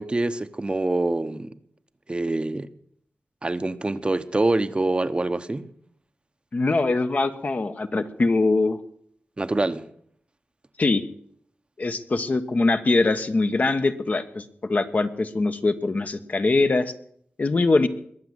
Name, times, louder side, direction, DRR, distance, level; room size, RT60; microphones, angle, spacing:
voice 1, 0.0-1.5 2.1-2.7 3.4-5.7 9.4-9.9, right 2 dB, 25° right, 0.9 m, -25 dB
voice 2, 6.5-8.8 10.8-11.0 11.8-16.9 17.4-17.9, left 3 dB, 45° left, 1.2 m, -22 dB
21.5 x 7.3 x 8.0 m
wide cardioid pair, 75°, 4 cm